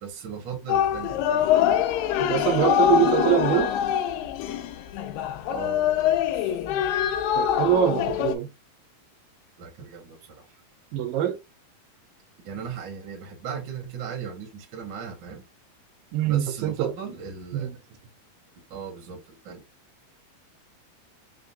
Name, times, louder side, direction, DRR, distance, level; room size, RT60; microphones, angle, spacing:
voice 1, 0.0-1.5 5.5-6.6 9.6-10.5 12.4-15.4 16.3-17.8 18.7-19.6, right 7 dB, 60° right, 1.2 m, -37 dB
sound 1, 0.7-8.4, left 10 dB, 85° left, 2.3 m, -24 dB
voice 2, 2.2-3.7 7.4-8.5 10.9-11.4 16.1-16.9 17.6-17.8, right 11 dB, 80° right, 2.4 m, -24 dB
5.5 x 2.2 x 2.6 m
omnidirectional pair, 4.0 m